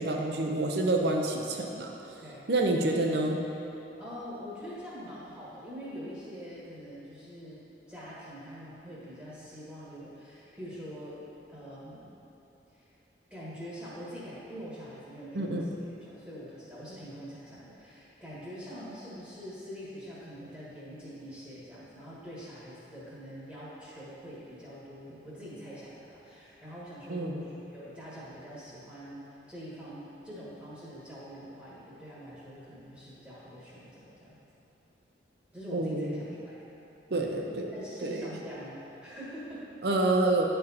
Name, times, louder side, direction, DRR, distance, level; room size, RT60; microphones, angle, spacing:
voice 1, 0.0-1.9 2.5-3.4 15.3-15.7 27.1-27.5 35.7-36.2 37.1-37.7 38.0-38.3 39.8-40.4, right 2 dB, 60° right, 2 dB, 0.7 m, -28 dB
voice 2, 2.2-2.8 4.0-12.1 12.7-12.9 13.3-15.7 16.1-34.4 35.5-36.6 37.1-37.3 37.7-39.7, equal, 10° right, -9 dB, 1.4 m, -44 dB
10.0 x 4.5 x 4.2 m, 2.9 s
head